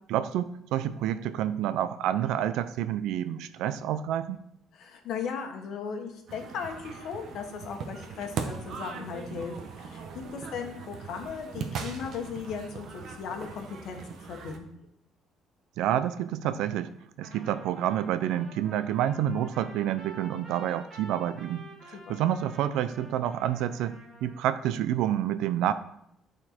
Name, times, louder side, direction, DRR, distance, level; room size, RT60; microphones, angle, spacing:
voice 1, 0.1-4.4 15.8-16.9 17.2-25.7, right 11 dB, 90° right, 12 dB, 0.4 m, -28 dB
voice 2, 4.7-14.0 14.3-14.6 21.9-22.2, left 6 dB, 60° left, 4 dB, 1.3 m, -37 dB
sound 1, 6.3-14.6, right 5 dB, 50° right, 0.9 m, -39 dB
Trumpet, 17.2-24.6, right 1 dB, 20° right, 1.8 m, -49 dB
11.0 x 4.4 x 4.3 m, 0.75 s
cardioid pair, 155°, 0 cm